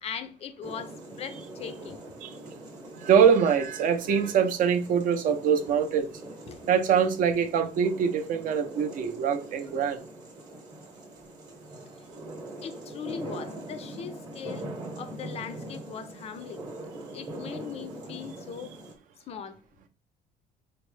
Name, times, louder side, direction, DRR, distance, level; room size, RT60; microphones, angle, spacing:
voice 1, 0.0-2.0 6.5-6.6 12.6-14.7 15.0-16.6 17.1-18.7 19.3-19.6, left 7 dB, 35° left, 0.4 m, -39 dB
sound 1, 0.6-18.9, right 1 dB, 25° right, 0.9 m, -42 dB
voice 2, 3.0-6.1 6.7-10.0, right 7 dB, 50° right, 0.5 m, -24 dB
4.2 x 2.0 x 3.1 m
cardioid pair, 170°, 18 cm